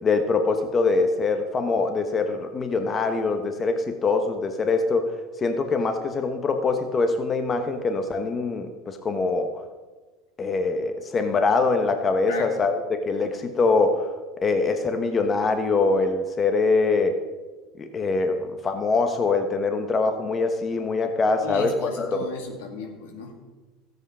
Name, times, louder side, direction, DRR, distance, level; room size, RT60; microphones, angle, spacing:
voice 1, 0.0-5.1 5.4-9.6 10.4-14.1 14.4-17.2 17.8-22.2, left 3 dB, 30° left, 6 dB, 1.1 m, -23 dB
voice 2, 21.4-23.3, left 3 dB, 80° left, 3 dB, 2.3 m, -34 dB
13.5 x 8.0 x 5.5 m, 1.3 s
hypercardioid pair, 85°, 0 cm